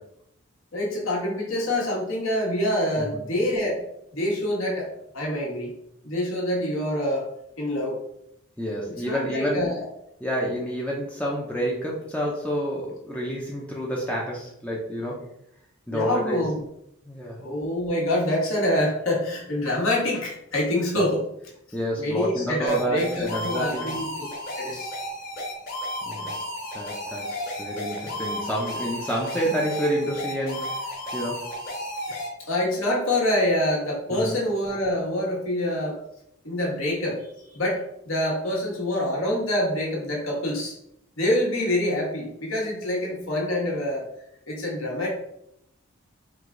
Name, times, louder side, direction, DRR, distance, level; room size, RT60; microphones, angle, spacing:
voice 1, 0.7-3.8 4.1-5.7 6.0-7.3 7.6-8.0 9.0-9.9 15.9-16.6 17.4-21.2 22.0-24.3 24.6-24.9 28.0-28.1 32.1-32.2 32.5-36.0 36.4-40.7 41.2-44.1 44.5-45.1, left 1 dB, 70° left, -3 dB, 1.4 m, -26 dB
voice 2, 8.6-9.7 10.2-15.3 15.9-16.4 17.1-17.4 20.9-21.1 21.7-23.9 26.1-26.4 26.7-31.5 34.1-34.4, equal, 5° left, -3 dB, 0.5 m, -29 dB
sound 1, 22.7-32.3, equal, 40° left, 1.4 m, -33 dB
4.7 x 2.3 x 3.7 m, 0.76 s
head